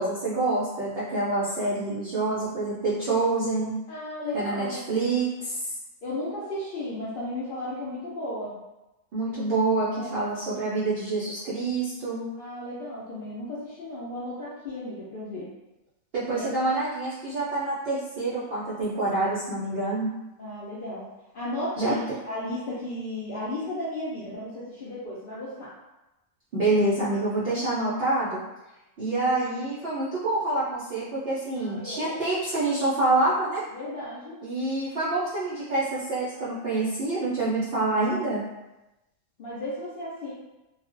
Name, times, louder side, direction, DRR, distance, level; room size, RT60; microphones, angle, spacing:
voice 1, 0.0-3.7 4.3-5.6 9.1-12.3 16.1-20.1 21.8-22.0 26.5-28.4 29.0-33.6 34.4-38.4, right 2 dB, 65° right, -9 dB, 0.6 m, -27 dB
voice 2, 3.9-4.8 6.0-8.6 9.9-10.1 12.4-15.5 16.3-16.5 20.4-21.1 21.3-22.0 22.3-25.7 31.6-32.1 33.7-34.4 39.4-40.3, left 1 dB, 80° left, -8 dB, 0.4 m, -34 dB
2.4 x 2.1 x 2.4 m, 1.0 s
omnidirectional pair, 1.5 m